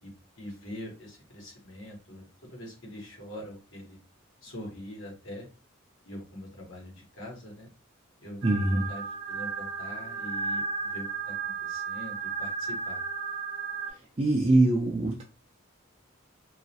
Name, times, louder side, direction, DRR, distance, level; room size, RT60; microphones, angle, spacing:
voice 1, 0.0-4.0 4.4-5.5 6.0-7.7 8.2-13.0, left 1 dB, 75° left, -1 dB, 1.0 m, -43 dB
voice 2, 8.4-8.8 14.2-15.2, right 2 dB, 30° right, -2 dB, 0.4 m, -23 dB
sound 1, 8.4-13.9, right 5 dB, 70° right, 0.7 m, -34 dB
2.3 x 2.0 x 2.7 m, 0.34 s
head